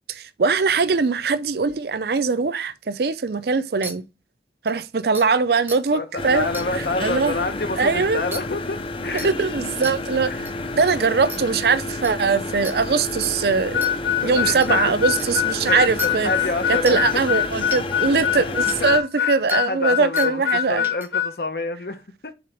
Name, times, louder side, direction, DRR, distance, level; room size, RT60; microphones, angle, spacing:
voice 1, 0.1-4.0 4.6-6.5 7.0-7.3 7.8-8.2 9.2-13.9 14.2-16.3 16.7-20.9, right 4 dB, 60° right, 0.5 m, -21 dB
sound 1, 3.8-3.9 4.7-4.8 5.1-5.3 5.7-5.8 6.5-6.7 8.3-8.4 9.2-9.3 9.8-9.9 10.4-10.5 11.3-11.4 12.0-12.1 12.6-12.8 13.2-13.3 13.8-13.9 14.6-14.7 15.2-15.3 16.0-16.1 16.9-17.1 17.7-17.8 18.7-18.8 19.5-19.6 20.2-20.3 20.8-21.1, right 1 dB, 10° right, 0.8 m, -33 dB
voice 2, 5.9-9.3 10.3-10.4 14.2-14.9 15.7-17.4 18.3-18.4 19.2-22.3, left 2 dB, 60° left, 0.9 m, -29 dB
sound 2, 6.2-19.0, left 2 dB, 30° left, 0.6 m, -30 dB
Harmonica, 13.7-21.3, left 10 dB, 85° left, 1.0 m, -23 dB
7.8 x 4.0 x 3.4 m
head